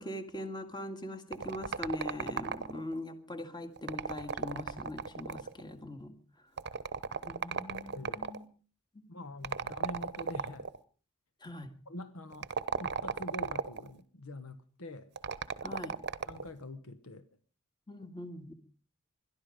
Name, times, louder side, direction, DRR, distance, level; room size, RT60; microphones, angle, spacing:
voice 1, 0.0-6.2 7.2-8.4 9.1-9.2 11.4-11.7 15.6-16.0 17.9-18.5, left 1 dB, 20° left, 1.9 m, -41 dB
sound 1, 1.3-2.9 3.8-5.6 6.6-8.4 9.4-10.8 12.3-13.9 15.2-16.5, right 5 dB, 50° right, 0.9 m, -36 dB
voice 2, 7.9-8.3 9.1-10.7 11.9-15.1 16.3-17.3, left 1 dB, 70° left, 1.2 m, -45 dB
22.0 x 13.0 x 5.1 m
head